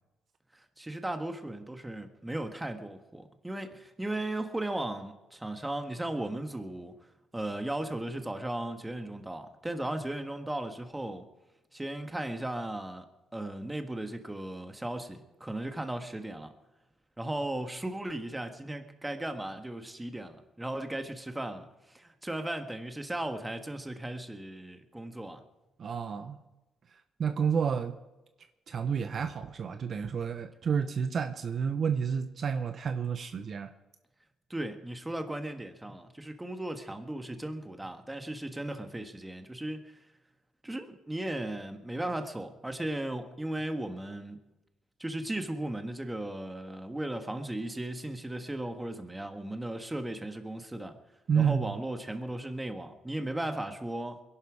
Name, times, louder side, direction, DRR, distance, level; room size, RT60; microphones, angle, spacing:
voice 1, 0.5-7.0 7.3-11.3 11.7-13.0 13.3-16.5 17.2-25.4 34.5-40.0 40.6-44.4 45.0-51.0 51.4-54.2, right 1 dB, 10° right, 7 dB, 1.7 m, -36 dB
voice 2, 25.8-26.4 27.2-27.9 28.7-33.7 51.3-51.7, right 6 dB, 50° right, 9 dB, 0.9 m, -30 dB
22.0 x 11.5 x 4.9 m, 1.0 s
cardioid pair, 90°, 0 cm